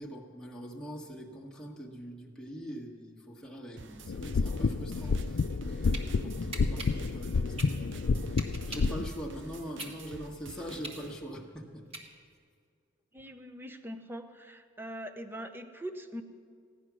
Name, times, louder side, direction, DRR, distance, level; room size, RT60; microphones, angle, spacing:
voice 1, 0.0-11.9, equal, 5° left, -3 dB, 1.6 m, -43 dB
sound 1, 3.8-11.1, right 3 dB, 70° right, 0.7 m, -50 dB
sound 2, 4.1-9.1, left 4 dB, 65° left, 0.4 m, -30 dB
sound 3, 5.9-6.0 6.5-9.0 9.4-12.4, right 2 dB, 30° right, 1.8 m, -43 dB
voice 2, 13.1-16.2, equal, 10° right, 7 dB, 0.8 m, -42 dB
16.5 x 10.5 x 6.2 m, 2.1 s
head